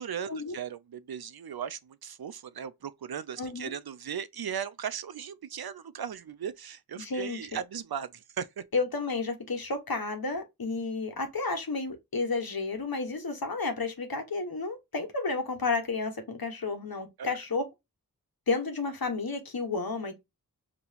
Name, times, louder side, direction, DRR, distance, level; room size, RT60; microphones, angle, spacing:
voice 1, 0.0-8.6 17.2-17.4, right 8 dB, 90° right, 0.5 m, -37 dB
voice 2, 3.4-3.7 7.0-7.4 8.7-17.7 18.5-20.2, left 3 dB, 80° left, 1.4 m, -31 dB
5.4 x 2.9 x 2.9 m
wide cardioid pair, 50°, 36 cm